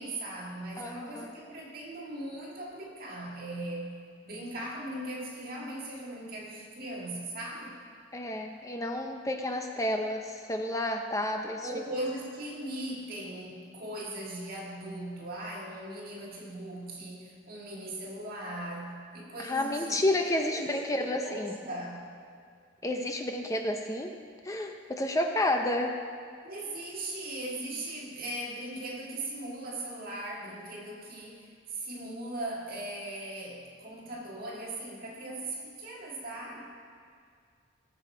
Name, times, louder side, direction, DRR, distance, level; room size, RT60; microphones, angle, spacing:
voice 1, 0.0-4.0 4.2-7.8 11.6-22.0 26.4-36.6, right 1 dB, 50° right, -3 dB, 2.0 m, -39 dB
voice 2, 0.8-1.3 8.1-11.7 19.4-21.5 22.8-24.1 24.4-26.0, left 1 dB, 15° left, 4 dB, 0.6 m, -30 dB
18.0 x 7.1 x 4.6 m, 2.2 s
head